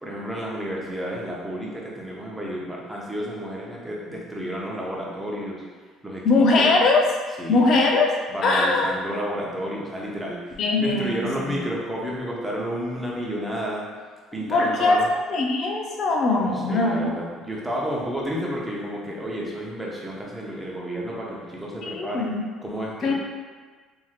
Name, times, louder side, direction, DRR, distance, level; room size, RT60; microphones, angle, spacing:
voice 1, 0.0-5.6 6.0-6.8 7.4-7.7 8.3-13.8 14.3-15.1 16.3-22.4 22.6-23.1, equal, 5° right, -4 dB, 0.7 m, -31 dB
voice 2, 6.2-7.0 7.5-8.1 8.4-8.9 10.6-11.6 14.5-15.0 15.3-17.1 21.8-22.5 23.0-23.1, left 3 dB, 55° left, 0 dB, 0.5 m, -21 dB
3.1 x 2.7 x 2.4 m, 1.4 s
supercardioid pair, 90°, 0 cm